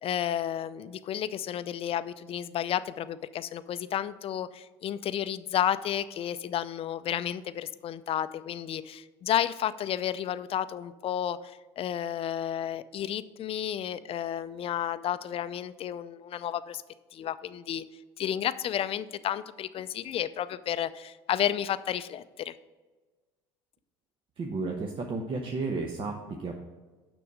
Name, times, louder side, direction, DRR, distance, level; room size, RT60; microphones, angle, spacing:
voice 1, 0.0-16.8 17.1-17.8 18.2-22.5, left 10 dB, 45° left, 14 dB, 0.5 m, -32 dB
voice 2, 24.4-26.5, right 3 dB, 40° right, 2 dB, 1.0 m, -33 dB
6.9 x 6.2 x 4.9 m, 1.3 s
hypercardioid pair, 70°, 14 cm